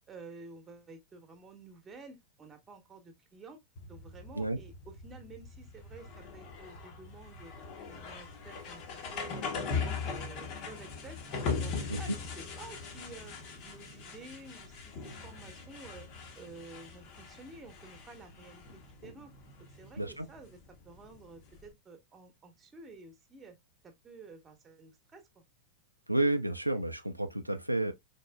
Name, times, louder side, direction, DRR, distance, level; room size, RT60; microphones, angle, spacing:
voice 1, 0.1-3.6 3.9-7.5 7.9-8.8 9.1-9.6 10.0-11.2 11.6-13.4 13.6-16.1 16.4-19.3 19.8-20.6 20.8-23.6 23.8-25.4, right 3 dB, 20° right, 1.0 m, -51 dB
sound 1, 3.8-21.7, left 5 dB, 40° left, 0.8 m, -41 dB
voice 2, 20.0-20.3 26.1-27.9, right 2 dB, 90° right, 0.3 m, -31 dB
4.1 x 2.9 x 2.2 m
figure-of-eight pair, 90°, 0 cm